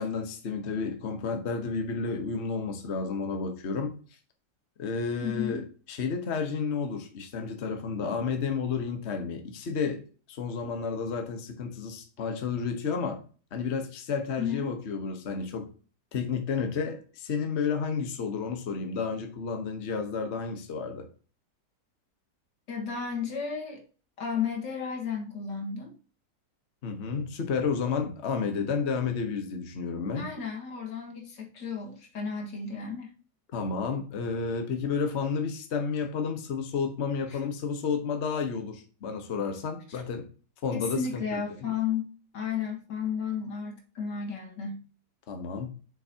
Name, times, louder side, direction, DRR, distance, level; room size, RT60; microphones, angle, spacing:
voice 1, 0.0-3.9 4.8-10.0 10.3-13.2 13.5-15.7 16.1-21.1 26.8-30.3 33.5-40.2 40.6-41.4 45.3-45.7, left 5 dB, 45° left, 5 dB, 1.3 m, -31 dB
voice 2, 5.2-5.7 14.4-14.7 22.7-23.8 24.2-25.9 30.1-33.1 37.3-37.4 40.8-42.1 42.3-44.8, left 6 dB, 85° left, 1 dB, 2.4 m, -33 dB
7.8 x 6.1 x 2.8 m, 0.38 s
omnidirectional pair, 1.9 m